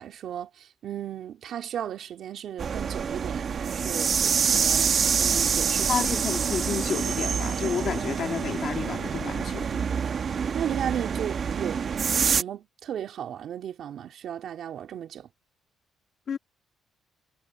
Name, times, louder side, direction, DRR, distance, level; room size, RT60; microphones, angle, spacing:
voice 1, 0.0-6.2 10.5-15.3, right 9 dB, 70° right, 2.7 m, -35 dB
sound 1, 2.6-12.4, right 6 dB, 50° right, 1.3 m, -26 dB
voice 2, 5.9-9.9 16.3-16.4, left 7 dB, 55° left, 2.6 m, -31 dB
cardioid pair, 90°, 0 cm